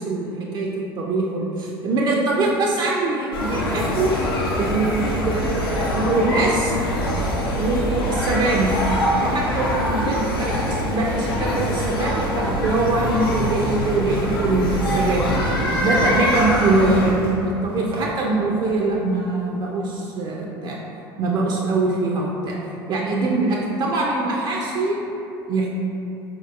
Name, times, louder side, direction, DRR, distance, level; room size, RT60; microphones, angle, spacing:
voice 1, 0.0-4.1 4.6-6.8 7.6-8.8 9.2-15.3 15.8-20.8 21.2-22.6 22.9-25.0 25.5-25.7, right 2 dB, 40° right, -2 dB, 0.4 m, -23 dB
sound 1, 3.3-17.1, equal, 80° left, 0.5 m, -23 dB
sound 2, 13.8-19.7, right 1 dB, 80° right, 0.8 m, -37 dB
4.3 x 2.8 x 2.5 m, 2.8 s
figure-of-eight pair, 65°, 12 cm